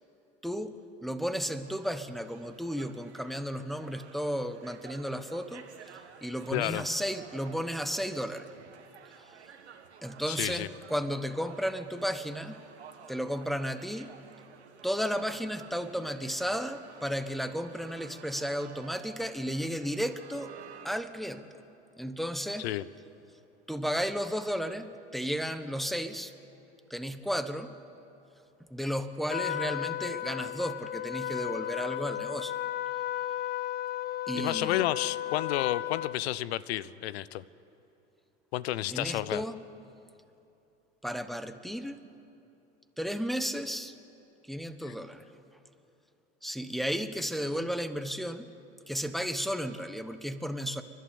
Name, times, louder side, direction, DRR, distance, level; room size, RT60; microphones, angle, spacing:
voice 1, 0.4-5.7 5.9-8.5 9.2-9.4 10.0-12.6 13.1-14.1 14.8-20.5 20.8-21.6 22.0-22.7 23.7-26.3 26.9-27.7 28.7-32.6 34.3-34.9 38.9-39.6 41.0-42.0 43.0-43.9 44.4-45.3 46.4-48.5 48.9-50.8, equal, ahead, 9 dB, 1.2 m, -33 dB
sound 1, 1.6-20.9, right 7 dB, 90° right, 1.7 m, -52 dB
voice 2, 6.5-6.8 10.3-10.7 22.6-22.8 34.3-37.4 38.5-39.4, left 14 dB, 70° left, 19 dB, 0.7 m, -31 dB
Trumpet, 29.3-36.2, left 13 dB, 30° left, 0.5 m, -34 dB
29.0 x 11.5 x 8.6 m, 2.9 s
hypercardioid pair, 85°, 32 cm